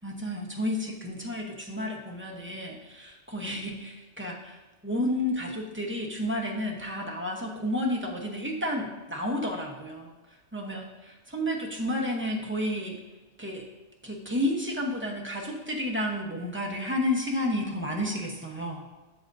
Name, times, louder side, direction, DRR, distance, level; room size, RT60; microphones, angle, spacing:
voice 1, 0.0-10.1 10.5-13.0 13.4-13.6 14.0-18.9, left 1 dB, 10° right, -1 dB, 0.8 m, -31 dB
7.8 x 7.2 x 2.7 m, 1.2 s
omnidirectional pair, 1.5 m